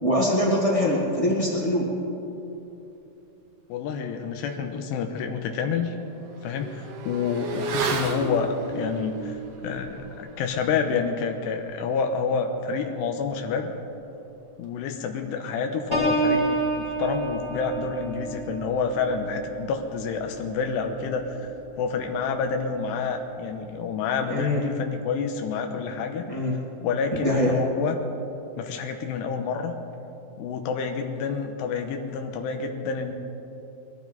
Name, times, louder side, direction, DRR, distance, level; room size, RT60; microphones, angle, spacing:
voice 1, 0.0-1.9 24.3-24.6 26.3-26.5 27.2-27.6, left 1 dB, 25° left, -5 dB, 0.6 m, -23 dB
voice 2, 3.7-5.9 6.4-13.7 14.6-16.5 16.8-21.5 21.8-26.2 26.8-28.0 28.6-29.7 30.4-33.1, left 5 dB, 90° left, 4 dB, 3.0 m, -28 dB
Motorcycle / Accelerating revving vroom, 4.6-4.7 5.1-15.1 15.4-15.5, right 4 dB, 75° right, 3.2 m, -36 dB
Piano, 15.9-21.5 22.0-22.3, right 2 dB, 20° right, 0.5 m, -30 dB
21.5 x 14.5 x 4.0 m, 2.9 s
omnidirectional pair, 4.8 m